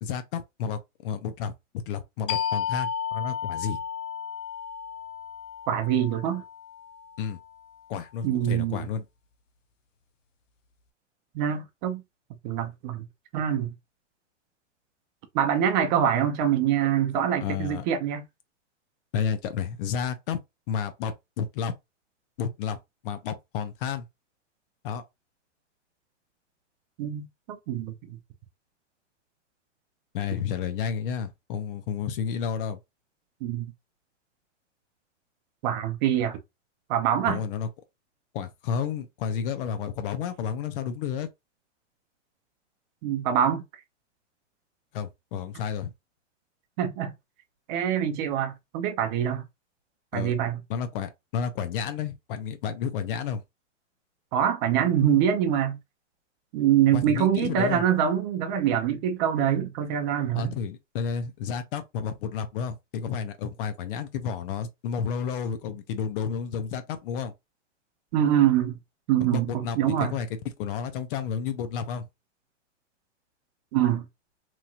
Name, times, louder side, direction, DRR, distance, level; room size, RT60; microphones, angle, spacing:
voice 1, 0.0-1.5 1.9-3.8 7.2-7.4 7.9-9.1 17.4-17.8 19.1-20.4 20.7-21.7 22.4-24.0 24.8-25.0 30.1-32.8 37.2-37.7 38.3-41.3 44.9-45.9 50.1-50.3 50.7-53.4 56.9-57.8 60.3-67.3 69.3-70.3 70.6-72.1, left 7 dB, 45° left, 0.6 m, -31 dB
sound 1, 2.3-7.6, left 7 dB, 85° left, 0.6 m, -33 dB
voice 2, 5.7-6.4 8.2-8.8 11.3-12.0 12.4-13.1 13.3-13.7 15.3-18.2 27.0-28.2 33.4-33.7 35.6-36.4 36.9-37.4 43.0-43.6 46.8-47.1 47.7-49.4 50.1-50.6 54.3-55.8 56.5-60.5 68.1-68.7 69.1-70.1 73.7-74.0, right 9 dB, 40° right, 0.6 m, -24 dB
3.0 x 2.7 x 2.4 m
hypercardioid pair, 125°, 37 cm